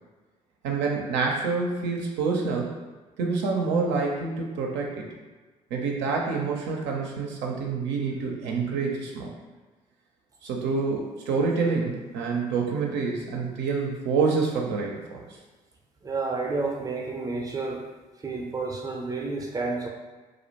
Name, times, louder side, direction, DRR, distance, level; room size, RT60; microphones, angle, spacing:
voice 1, 0.6-2.7 3.2-5.0 5.7-9.3 10.4-15.2, right 4 dB, 70° right, 0 dB, 0.5 m, -27 dB
voice 2, 16.0-17.8 18.2-19.9, right 3 dB, 20° right, 1 dB, 0.5 m, -30 dB
2.4 x 2.1 x 2.8 m, 1.3 s
hypercardioid pair, 50°, 19 cm